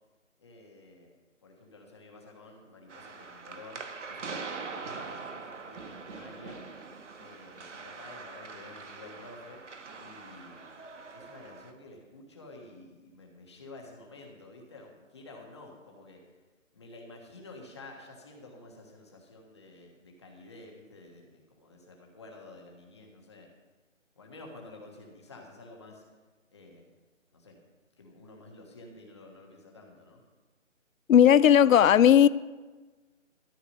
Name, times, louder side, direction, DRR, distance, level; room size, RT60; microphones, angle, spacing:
voice 1, 0.4-1.1 1.4-6.7 7.2-9.6 10.0-10.7 11.1-16.2 16.7-23.5 24.2-26.0 26.5-26.9 27.3-27.6 28.0-30.2, left 2 dB, 20° left, 1 dB, 1.3 m, -50 dB
sound 1, 2.9-11.7, right 4 dB, 65° right, 1.2 m, -43 dB
voice 2, 31.1-32.3, left 9 dB, 85° left, 18 dB, 0.5 m, -17 dB
13.5 x 9.5 x 5.3 m, 1.3 s
hypercardioid pair, 170°, 39 cm